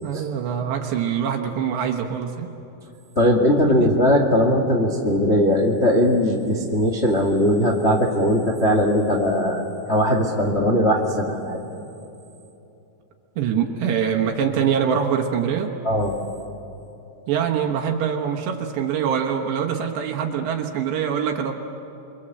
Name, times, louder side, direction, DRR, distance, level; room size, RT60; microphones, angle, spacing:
voice 1, 0.0-2.5 3.8-3.9 13.4-15.7 17.3-21.5, right 8 dB, 80° right, 2 dB, 3.5 m, -24 dB
voice 2, 3.1-11.6 15.8-16.1, equal, 65° left, 1 dB, 0.6 m, -19 dB
28.5 x 23.5 x 7.8 m, 2.9 s
omnidirectional pair, 5.0 m